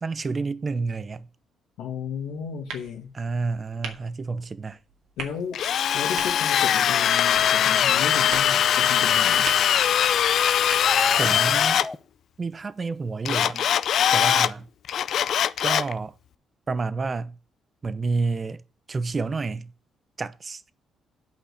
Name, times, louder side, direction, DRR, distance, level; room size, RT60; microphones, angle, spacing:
voice 1, 0.0-1.3 3.1-4.8 11.1-11.8 12.4-13.7 14.1-14.7 15.6-16.1 16.7-17.4 17.8-18.6 18.9-19.7 20.2-20.7, right 4 dB, 35° right, 0.8 m, -29 dB
voice 2, 1.8-3.1 5.2-5.6 5.9-9.5, left 7 dB, 90° left, 1.7 m, -33 dB
sound 1, 2.1-11.8, right 6 dB, 85° right, 2.1 m, -43 dB
Drill, 5.5-11.9 13.3-14.5 14.9-15.9, left 9 dB, 70° left, 0.5 m, -21 dB
sound 2, 10.8-12.0, left 2 dB, 20° left, 0.7 m, -30 dB
8.9 x 5.4 x 8.0 m
cardioid pair, 90°, 0 cm